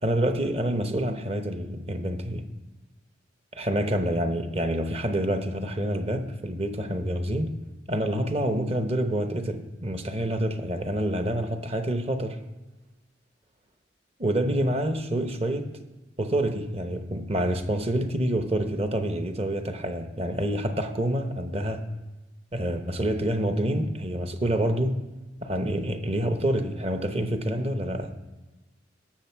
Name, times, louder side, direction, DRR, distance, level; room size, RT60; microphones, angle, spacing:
voice 1, 0.0-2.5 3.5-7.5 7.9-12.4 14.2-15.8 16.2-21.8 22.5-25.1 25.4-28.2, right 1 dB, 30° right, 0.9 m, -27 dB
18.0 x 6.7 x 4.5 m
head